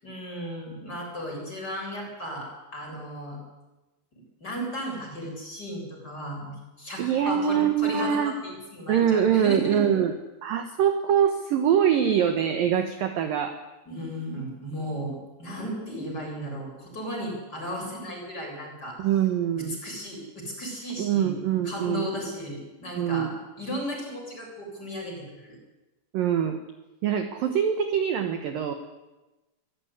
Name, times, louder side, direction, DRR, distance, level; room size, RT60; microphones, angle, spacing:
voice 1, 0.0-3.4 4.1-10.0 13.9-19.0 19.5-21.4 21.6-23.3 23.6-25.6, equal, 20° left, -1 dB, 7.8 m, -35 dB
voice 2, 7.0-8.4 8.9-10.1 10.4-13.6 19.0-19.8 21.0-22.1 23.0-23.3 26.1-26.6 27.0-28.7, right 8 dB, 65° right, 7 dB, 2.4 m, -24 dB
25.0 x 15.0 x 9.8 m, 1.1 s
omnidirectional pair, 5.5 m